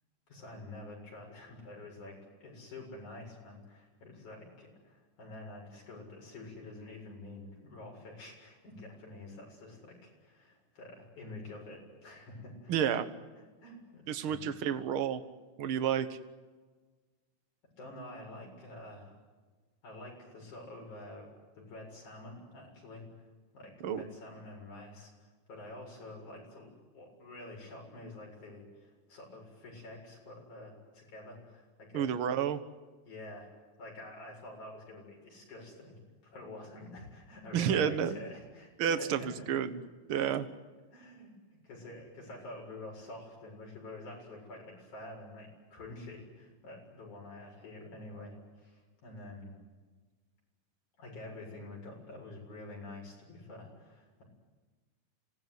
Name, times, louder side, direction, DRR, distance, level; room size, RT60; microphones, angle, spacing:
voice 1, 0.3-13.0 13.4-14.4 17.8-19.1 19.8-21.3 21.6-23.3 23.5-32.1 33.0-33.5 33.8-39.5 40.1-40.3 40.9-41.3 41.6-49.6 51.0-54.2, left 2 dB, 75° left, -1 dB, 8.8 m, -48 dB
voice 2, 12.7-13.1 14.1-15.2 15.6-16.1 23.8-24.0 31.9-32.6 37.5-38.2 38.8-39.8 40.1-40.4, right 8 dB, 55° right, 11 dB, 1.9 m, -30 dB
27.5 x 18.0 x 9.6 m, 1.4 s
omnidirectional pair, 3.4 m